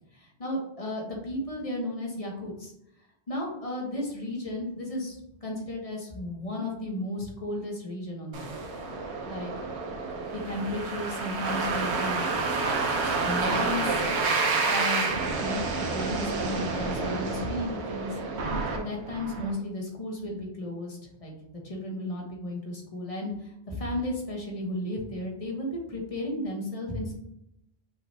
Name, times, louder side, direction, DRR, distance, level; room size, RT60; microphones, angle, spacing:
voice 1, 0.1-2.7 3.3-8.5 9.3-9.5 10.3-12.4 12.9-14.0 14.6-15.1 15.4-18.2 18.7-21.3 21.6-27.1, left 1 dB, 35° left, -1 dB, 1.2 m, -34 dB
sound 1, 8.3-19.5, right 3 dB, 85° right, 1.1 m, -29 dB
6.0 x 3.2 x 2.7 m, 0.80 s
omnidirectional pair, 1.1 m